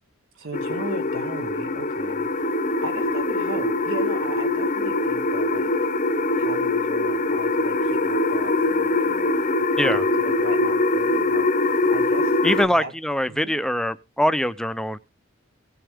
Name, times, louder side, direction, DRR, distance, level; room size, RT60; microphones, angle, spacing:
voice 1, 0.3-2.4 2.8-5.7 6.4-9.5 9.8-12.9 13.3-13.5, right 3 dB, 70° right, 3.3 m, -37 dB
sound 1, 0.5-12.7, left 2 dB, 35° left, 0.8 m, -23 dB
voice 2, 12.4-15.0, equal, 5° left, 0.5 m, -23 dB
18.5 x 6.9 x 3.5 m
head